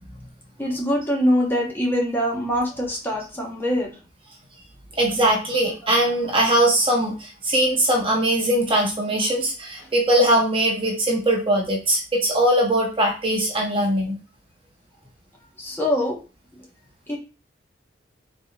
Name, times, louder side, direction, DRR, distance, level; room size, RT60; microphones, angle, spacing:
voice 1, 0.6-3.9 15.6-16.2 17.1-17.2, equal, 10° left, -2 dB, 1.1 m, -23 dB
voice 2, 5.0-14.2, right 1 dB, 30° right, -1 dB, 0.9 m, -21 dB
4.0 x 3.6 x 2.4 m, 0.33 s
head